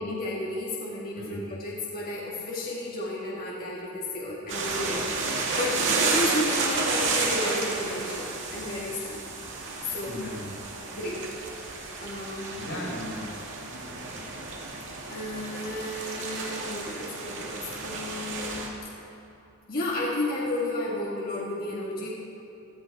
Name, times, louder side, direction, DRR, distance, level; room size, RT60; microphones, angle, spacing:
voice 1, 0.0-9.3 9.9-10.2 10.9-11.2 12.0-12.6 15.1-18.6 19.7-22.1, left 2 dB, 45° left, -5 dB, 1.9 m, -33 dB
voice 2, 1.2-1.5 10.0-10.5 12.5-14.4, left 1 dB, 85° left, -3 dB, 4.4 m, -38 dB
sound 1, 4.5-18.7, right 3 dB, 60° right, 2.2 m, -31 dB
17.0 x 13.0 x 4.7 m, 2.7 s
head